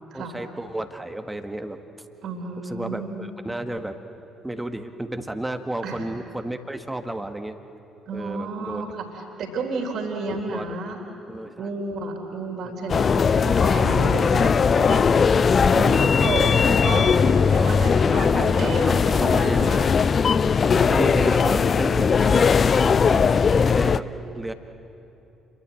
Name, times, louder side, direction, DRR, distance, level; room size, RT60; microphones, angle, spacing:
voice 1, 0.1-1.8 2.6-4.0 4.4-7.6 8.1-8.8 10.3-11.7 18.0-19.8 20.7-24.5, right 1 dB, 10° right, 8 dB, 1.7 m, -32 dB
voice 2, 2.2-3.3 5.8-6.0 8.1-11.0 11.6-15.3 15.7-17.2 17.5-19.9 20.8-21.4, right 3 dB, 55° right, 2 dB, 3.7 m, -31 dB
sound 1, 12.9-24.0, left 6 dB, 40° left, 0.6 m, -19 dB
30.0 x 23.0 x 7.8 m, 2.8 s
figure-of-eight pair, 45°, 0 cm